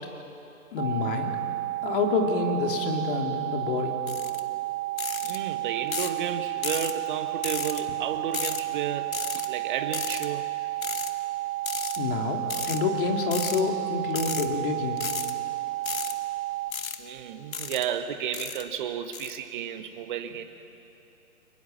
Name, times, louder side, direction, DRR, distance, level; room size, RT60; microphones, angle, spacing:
voice 1, 0.7-1.3 1.8-4.0 12.0-15.1, left 4 dB, 40° left, 2 dB, 3.3 m, -28 dB
sound 1, 0.8-16.7, right 17 dB, 65° right, 1.7 m, -32 dB
sound 2, 4.1-4.4 5.0-5.4 5.9-6.2 6.6-6.9 7.4-7.8 8.3-8.6 9.1-9.5 9.9-10.3 10.8-11.1 11.6-12.0 12.5-12.8 13.3-13.6 14.1-14.5 15.0-15.3 15.8-16.1 16.7-17.0 17.5-17.9 18.3-18.6 19.1-19.4, left 6 dB, 70° left, 1.9 m, -33 dB
voice 2, 5.2-9.2 9.5-10.5 17.0-20.4, right 9 dB, 35° right, 8 dB, 1.4 m, -32 dB
30.0 x 22.5 x 7.2 m, 2.8 s
figure-of-eight pair, 135°, 43 cm